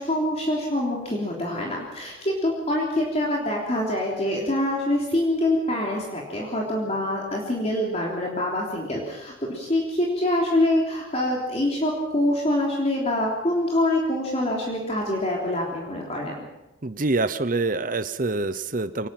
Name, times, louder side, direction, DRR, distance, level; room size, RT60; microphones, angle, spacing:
voice 1, 0.0-16.4, left 1 dB, 30° left, -2 dB, 3.4 m, -25 dB
voice 2, 16.8-19.1, right 3 dB, 40° right, 12 dB, 0.8 m, -25 dB
24.0 x 19.5 x 5.9 m, 1.0 s
head